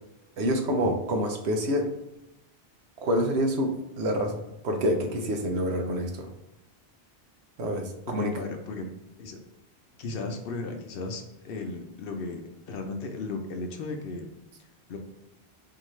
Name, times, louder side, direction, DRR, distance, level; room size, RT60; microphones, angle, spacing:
voice 1, 0.4-1.9 3.0-6.3 7.6-8.4, equal, 80° right, 4 dB, 1.0 m, -27 dB
voice 2, 8.1-8.9 9.2-9.4 10.0-14.3 14.9-15.0, left 3 dB, 65° left, 4 dB, 0.8 m, -35 dB
4.6 x 2.6 x 3.1 m, 0.90 s
omnidirectional pair, 1.1 m